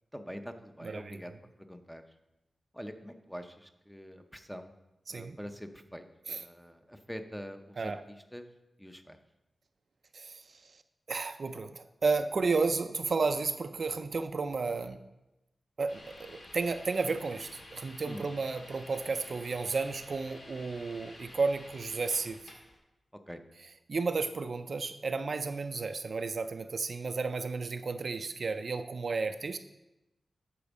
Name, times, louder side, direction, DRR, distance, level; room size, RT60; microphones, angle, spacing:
voice 1, 0.1-1.3 1.7-2.0 2.7-4.7 5.1-6.0 6.4-7.9 8.3-8.5 8.8-9.2 18.0-18.3 23.3-23.4, equal, ahead, 7 dB, 0.5 m, -44 dB
voice 2, 0.8-1.2 5.1-5.4 6.3-6.4 7.8-8.0 10.1-10.4 11.1-15.0 15.8-22.4 23.9-29.6, right 4 dB, 50° right, 9 dB, 0.3 m, -32 dB
sound 1, 15.9-22.8, left 1 dB, 75° left, 1.7 m, -51 dB
8.5 x 4.4 x 6.0 m, 0.95 s
wide cardioid pair, 160°, 0 cm